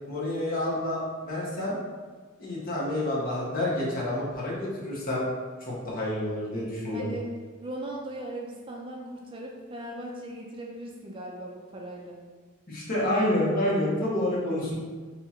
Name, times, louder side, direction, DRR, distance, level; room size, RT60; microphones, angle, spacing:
voice 1, 0.1-1.7 2.4-5.2 5.6-7.1 12.7-14.7, left 1 dB, 45° left, -6 dB, 1.0 m, -28 dB
voice 2, 6.9-7.3 7.6-12.2, right 1 dB, 25° right, -1 dB, 0.3 m, -38 dB
2.8 x 2.4 x 4.2 m, 1.4 s
head